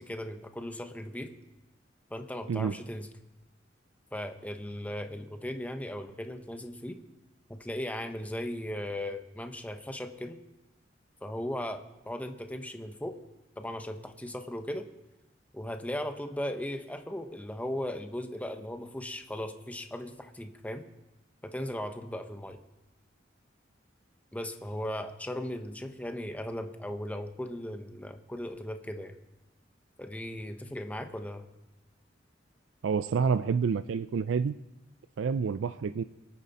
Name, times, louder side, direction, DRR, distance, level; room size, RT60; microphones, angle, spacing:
voice 1, 0.0-1.3 2.1-3.1 4.1-7.0 7.5-10.4 11.2-13.2 13.6-14.9 15.5-20.8 21.4-22.6 24.3-29.2 30.0-31.5, left 1 dB, 10° left, 7 dB, 0.9 m, -37 dB
voice 2, 32.8-34.5 35.2-36.0, right 5 dB, 85° right, 13 dB, 0.4 m, -28 dB
23.5 x 9.1 x 4.2 m, 0.99 s
head